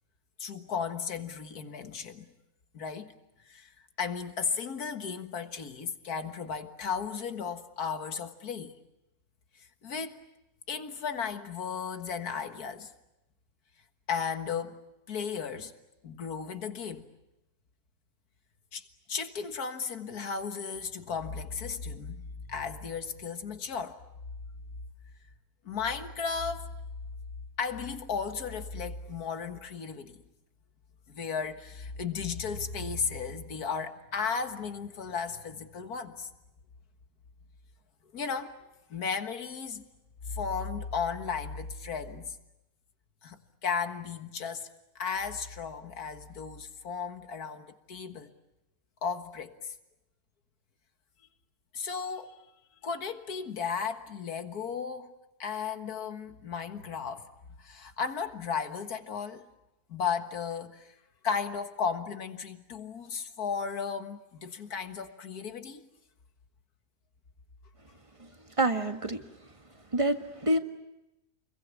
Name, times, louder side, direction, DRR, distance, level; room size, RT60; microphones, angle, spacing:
voice 1, 0.4-2.2 2.7-3.1 3.4-8.8 9.6-10.2 10.7-12.9 14.1-14.8 15.1-15.7 16.0-17.1 18.7-24.0 25.6-26.7 27.6-30.2 31.1-36.3 38.1-38.6 38.9-39.8 40.3-42.4 43.2-44.7 45.0-48.3 49.0-49.7 51.7-52.3 52.8-55.1 55.4-57.3 57.6-59.5 59.9-61.0 61.2-65.9, left 6 dB, 75° left, 2.1 m, -35 dB
voice 2, 68.6-69.2 69.9-70.6, right 1 dB, 20° right, 1.6 m, -26 dB
29.0 x 22.5 x 8.4 m
omnidirectional pair, 1.6 m